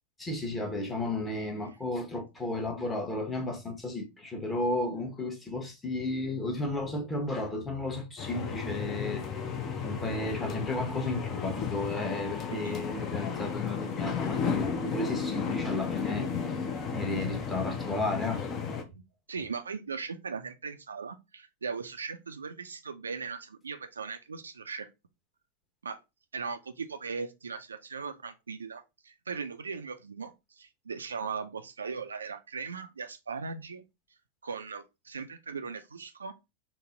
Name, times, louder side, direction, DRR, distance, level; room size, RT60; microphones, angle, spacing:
voice 1, 0.2-9.4 9.8-16.3 16.9-18.4, left 2 dB, 15° left, 1.0 m, -33 dB
sound 1, 8.2-18.8, left 6 dB, 30° left, 0.6 m, -33 dB
voice 2, 19.3-24.9 25.8-26.0 26.3-33.8 34.4-36.3, right 5 dB, 75° right, 0.4 m, -38 dB
3.9 x 2.0 x 3.6 m
figure-of-eight pair, 90°, 0 cm